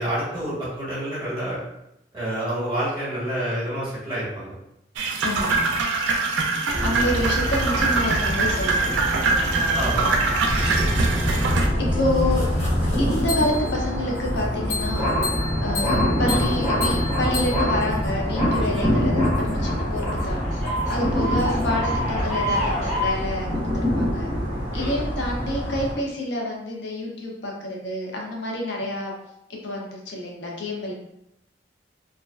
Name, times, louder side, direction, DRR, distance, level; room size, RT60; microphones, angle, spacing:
voice 1, 0.0-1.6 2.1-4.5 9.7-10.1 18.6-18.8 24.7-24.9, right 1 dB, 30° right, -9 dB, 1.3 m, -28 dB
sound 1, 5.0-11.7, right 3 dB, 85° right, 0.3 m, -23 dB
voice 2, 5.2-5.7 6.8-9.8 10.4-10.5 11.8-12.4 13.0-15.2 15.6-20.5 20.9-24.3 24.7-29.1 29.5-30.9, left 1 dB, 70° left, -1 dB, 0.5 m, -28 dB
sound 2, 6.7-25.9, equal, 10° right, 0.8 m, -27 dB
sound 3, 10.5-13.8 14.7-23.1, left 1 dB, 40° left, 0.9 m, -26 dB
2.4 x 2.3 x 2.2 m, 0.84 s
head